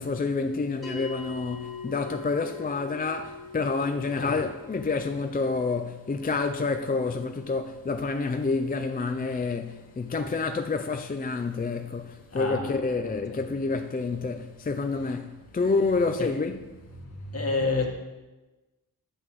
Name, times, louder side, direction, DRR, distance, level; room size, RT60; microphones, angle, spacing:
voice 1, 0.0-16.6, left 4 dB, 25° left, 0.4 m, -28 dB
sound 1, 0.8-11.4, left 5 dB, ahead, 2.4 m, -45 dB
voice 2, 4.1-4.4 12.3-13.4 15.0-15.1 16.2-16.3 17.3-17.8, left 3 dB, 40° left, 1.5 m, -30 dB
12.5 x 7.9 x 3.1 m
wide cardioid pair, 140°, 37 cm